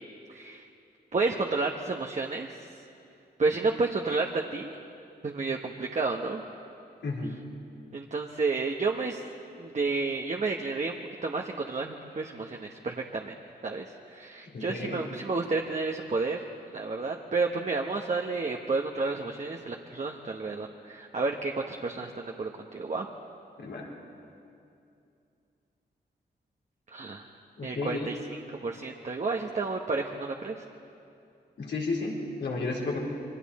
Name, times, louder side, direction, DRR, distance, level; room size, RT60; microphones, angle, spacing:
voice 1, 0.3-0.6 1.1-2.7 3.4-4.8 5.2-6.4 7.9-9.2 9.6-11.0 11.2-13.3 13.6-16.4 16.7-23.1 26.9-27.3 27.6-30.6, right 3 dB, 40° right, 1 dB, 1.2 m, -31 dB
voice 2, 7.0-7.4 14.5-15.1 23.6-23.9 27.6-28.1 31.6-33.0, left 3 dB, 80° left, -2 dB, 3.8 m, -32 dB
27.5 x 23.0 x 4.3 m, 2.6 s
cardioid pair, 75°, 18 cm